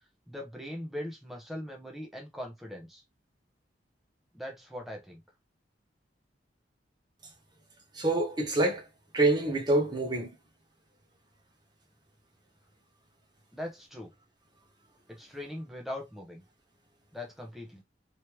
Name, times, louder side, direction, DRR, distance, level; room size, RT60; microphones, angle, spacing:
voice 1, 0.3-3.0 4.3-5.2 13.5-14.1 15.1-16.4 17.1-17.8, left 1 dB, ahead, 1.0 m, -40 dB
voice 2, 7.9-8.8 9.1-10.3, right 2 dB, 25° right, 1.1 m, -26 dB
3.3 x 3.0 x 3.0 m
head